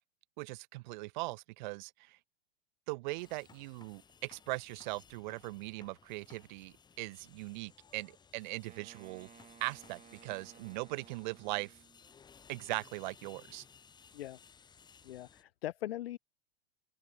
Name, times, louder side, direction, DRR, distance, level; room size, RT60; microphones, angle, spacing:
voice 1, 0.4-2.2 2.9-9.3 9.6-11.7 12.5-13.6, right 23 dB, 50° right, 0.5 m, -40 dB
sound 1, 3.2-15.4, left 6 dB, 15° left, 0.9 m, -60 dB
Wind instrument woodwind instrument, 8.7-12.2, right 8 dB, 20° right, 3.4 m, -58 dB
voice 2, 15.0-16.2, left 13 dB, 75° left, 0.6 m, -40 dB
open air
hypercardioid pair, 105°, 30 cm